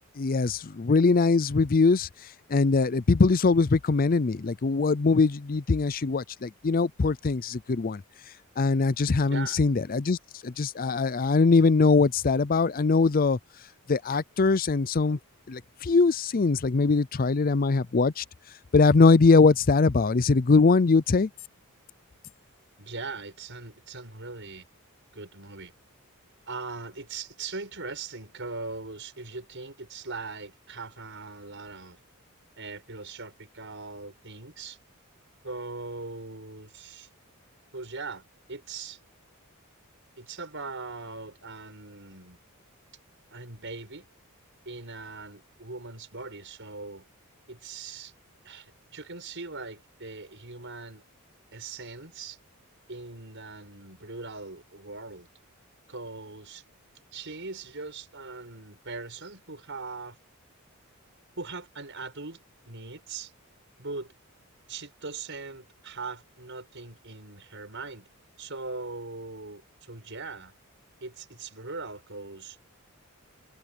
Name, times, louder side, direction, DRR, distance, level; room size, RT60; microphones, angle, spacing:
voice 1, 0.2-2.1 2.5-8.0 8.6-10.2 10.4-13.4 13.9-15.2 15.5-18.2 18.7-21.3, left 4 dB, 40° left, 0.5 m, -22 dB
voice 2, 9.3-9.6 22.8-24.6 25.1-25.7 26.5-32.0 32.6-34.8 35.4-37.1 37.7-39.0 40.2-42.4 43.3-44.1 44.6-47.1 47.5-48.1 48.4-51.0 51.5-52.4 52.9-55.3 55.9-56.6 57.1-60.2 61.4-63.3 63.8-64.1 64.7-68.1 68.4-70.5 71.0-72.6, right 3 dB, 55° right, 6.4 m, -40 dB
head